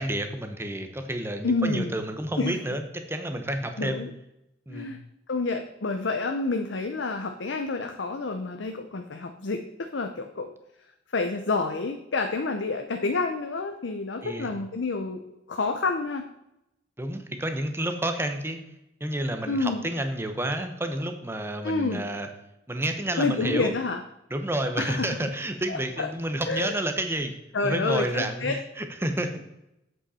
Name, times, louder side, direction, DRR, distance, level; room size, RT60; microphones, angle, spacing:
voice 1, 0.0-4.0 4.7-4.9 14.2-14.5 17.0-18.6 19.0-22.3 22.7-23.7 24.3-27.4 27.6-29.3, right 1 dB, 10° right, 7 dB, 0.9 m, -30 dB
voice 2, 1.4-1.9 2.4-2.6 3.8-4.1 4.7-5.0 5.3-10.5 11.1-15.2 15.5-16.3 19.5-19.8 21.6-22.0 23.2-24.0 24.8-25.3 25.7-26.1 26.5-26.7 27.5-28.6, left 3 dB, 65° left, 5 dB, 0.7 m, -28 dB
8.0 x 7.7 x 4.2 m, 0.85 s
head